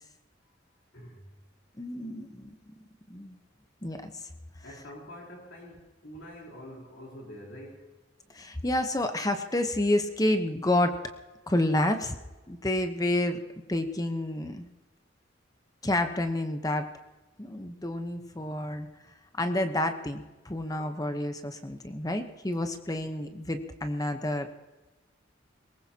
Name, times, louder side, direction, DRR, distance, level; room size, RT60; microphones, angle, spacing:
voice 1, 0.9-1.3 4.6-7.9, equal, 75° left, -2 dB, 3.8 m, -46 dB
voice 2, 1.8-2.7 3.1-3.4 3.8-4.3 8.3-11.0 11.5-12.2 12.5-13.4 13.7-14.7 15.8-16.9 17.4-18.9 19.4-24.5, left 1 dB, 20° left, 7 dB, 0.9 m, -29 dB
22.0 x 19.5 x 2.9 m, 1.1 s
head